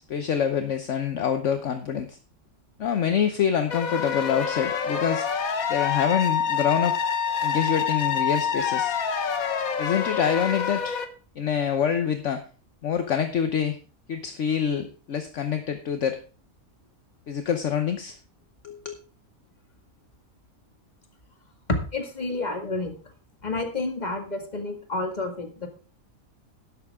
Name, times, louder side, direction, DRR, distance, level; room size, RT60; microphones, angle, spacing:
voice 1, 0.1-2.2 2.8-5.3 5.7-7.0 7.4-8.9 9.8-10.9 11.4-12.4 12.8-13.8 14.1-16.2 17.3-18.2 18.6-18.9, left 8 dB, 60° left, 8 dB, 1.2 m, -26 dB
sound 1, 3.7-11.1, left 7 dB, 75° left, 1.6 m, -27 dB
voice 2, 21.7-22.9 23.4-25.7, left 2 dB, 30° left, 4 dB, 2.1 m, -29 dB
11.5 x 11.0 x 3.6 m, 0.37 s
omnidirectional pair, 1.5 m